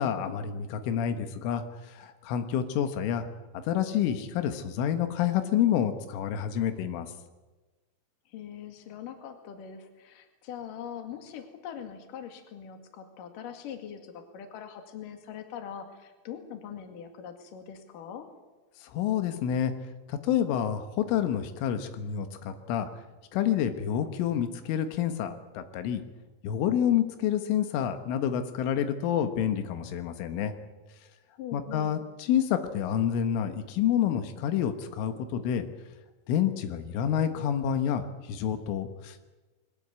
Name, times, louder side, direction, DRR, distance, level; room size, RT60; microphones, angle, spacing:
voice 1, 0.0-3.3 3.6-7.1 18.8-19.7 20.1-22.9 23.3-26.0 26.4-30.5 31.5-35.7 36.3-39.2, left 9 dB, 90° left, 8 dB, 3.9 m, -28 dB
voice 2, 8.3-18.3 31.4-32.0, left 8 dB, 50° left, 5 dB, 3.3 m, -42 dB
22.0 x 19.0 x 8.3 m, 1.2 s
omnidirectional pair, 5.5 m